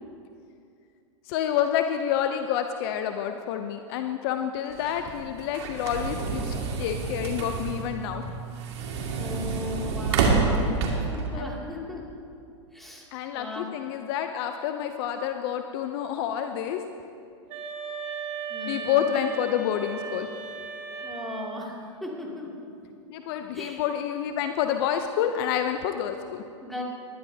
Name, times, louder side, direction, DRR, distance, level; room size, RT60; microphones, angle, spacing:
voice 1, 1.3-8.3 11.3-11.5 13.1-16.8 18.7-20.3 23.1-26.4, left 9 dB, 55° left, 7 dB, 0.7 m, -28 dB
sound 1, 4.7-11.3, right 4 dB, 65° right, 2.3 m, -28 dB
voice 2, 9.1-10.8 11.1-12.1 12.7-13.7 18.5-18.9 20.9-22.7 23.5-23.8 26.6-26.8, left 2 dB, ahead, -3 dB, 2.7 m, -37 dB
sound 2, 17.5-21.6, right 5 dB, 45° right, 2.8 m, -36 dB
19.5 x 12.0 x 2.9 m, 2.5 s
hypercardioid pair, 110°, 16 cm